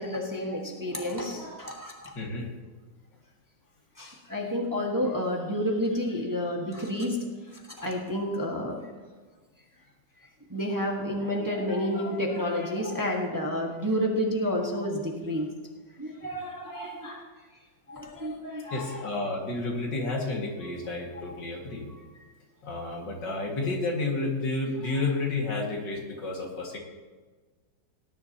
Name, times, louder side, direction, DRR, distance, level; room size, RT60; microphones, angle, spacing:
voice 1, 0.0-2.1 4.0-7.3 7.8-8.9 10.5-15.5 16.0-17.2 17.9-18.8, equal, 10° right, -1 dB, 1.4 m, -30 dB
voice 2, 2.1-2.5 16.6-17.0 18.6-21.9 22.6-26.8, left 2 dB, 80° left, -1 dB, 2.7 m, -31 dB
18.0 x 10.5 x 2.9 m, 1.4 s
omnidirectional pair, 1.9 m